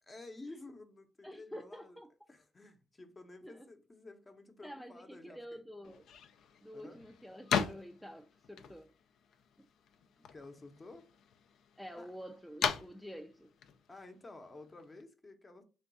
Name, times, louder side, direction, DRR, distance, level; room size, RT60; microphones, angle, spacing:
voice 1, 0.0-2.0 2.3-5.6 6.7-7.0 10.0-11.1 12.0-12.1 13.9-15.6, left 2 dB, 25° left, 0.7 m, -52 dB
voice 2, 1.2-2.1 3.4-3.7 4.6-6.0 6.6-8.9 9.6-9.7 11.8-13.5, equal, ahead, 0.3 m, -48 dB
sound 1, 5.8-15.0, left 7 dB, 75° left, 0.4 m, -40 dB
3.4 x 2.3 x 3.9 m
cardioid pair, 90°, 0 cm